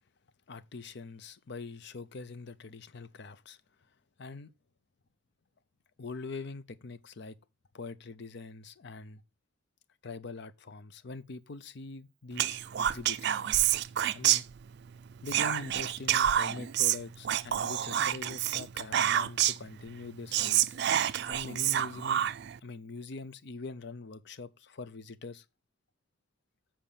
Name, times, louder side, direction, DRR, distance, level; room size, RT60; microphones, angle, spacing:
voice 1, 0.5-3.6 4.2-4.5 6.0-7.4 7.7-9.2 10.0-13.4 14.1-14.5 15.2-20.8 21.3-22.2 22.6-25.4, left 3 dB, 60° left, 0.6 m, -43 dB
Whispering, 12.4-14.9 15.3-19.7 20.0-20.1 20.3-22.6, right 11 dB, 60° right, 0.4 m, -28 dB
7.3 x 4.4 x 6.8 m
head